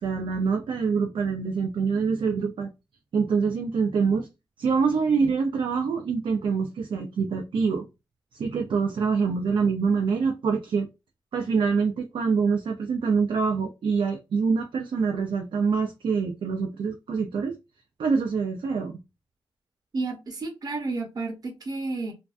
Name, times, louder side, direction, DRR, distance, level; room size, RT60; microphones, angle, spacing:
voice 1, 0.0-2.7 3.1-4.3 4.6-7.8 8.3-10.9 11.3-17.6 18.0-19.0, right 5 dB, 70° right, 0.4 m, -25 dB
voice 2, 19.9-22.1, right 3 dB, 45° right, 0.9 m, -31 dB
2.5 x 2.2 x 2.4 m
wide cardioid pair, 120°, 9 cm